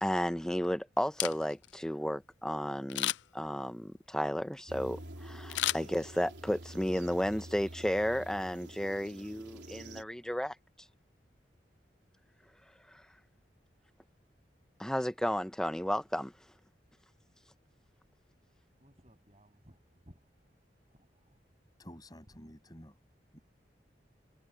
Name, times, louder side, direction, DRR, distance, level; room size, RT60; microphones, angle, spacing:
voice 1, 0.0-10.5 14.8-16.3, equal, 5° left, 0.7 m, -33 dB
Camera, 1.0-1.8 2.9-3.5 5.5-6.4 6.9-7.0, left 15 dB, 85° left, 0.3 m, -34 dB
sound 1, 4.7-10.0, right 1 dB, 75° right, 3.6 m, -47 dB
voice 2, 18.5-20.3 20.9-21.4, equal, 35° right, 7.9 m, -61 dB
voice 3, 21.8-23.0 23.3-23.4, equal, 20° left, 6.7 m, -51 dB
head